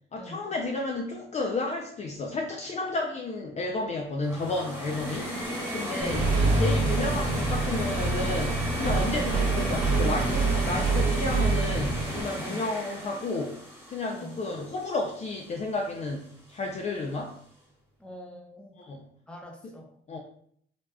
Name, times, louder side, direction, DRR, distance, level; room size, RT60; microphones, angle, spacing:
voice 1, 0.1-5.4 5.7-6.3 6.5-17.4 18.8-19.1 19.6-19.7 20.1-20.2, left 2 dB, 35° left, 1 dB, 0.4 m, -32 dB
sound 1, 4.2-15.2, equal, 10° right, 1.5 m, -34 dB
voice 2, 5.8-6.4 12.3-12.7 14.1-14.4 18.0-18.7 19.3-20.0, left 1 dB, 5° left, 0 dB, 0.7 m, -42 dB
Accelerating revving vroom, 6.0-12.2, right 3 dB, 80° right, 0.8 m, -26 dB
3.3 x 2.4 x 2.2 m, 0.63 s
cardioid pair, 90°, 20 cm